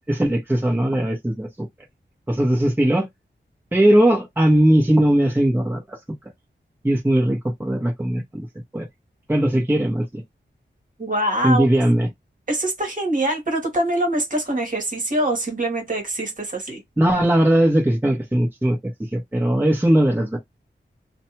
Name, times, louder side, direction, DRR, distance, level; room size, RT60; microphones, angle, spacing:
voice 1, 0.1-1.7 2.3-3.1 3.7-6.0 6.8-8.5 8.7-8.8 9.3-10.2 11.4-12.1 17.0-18.8 19.1-20.4, right 1 dB, 10° right, 1.0 m, -19 dB
voice 2, 11.0-11.6 12.5-16.8, right 1 dB, 45° right, 1.3 m, -24 dB
2.6 x 2.2 x 2.9 m
wide cardioid pair, 90°, 19 cm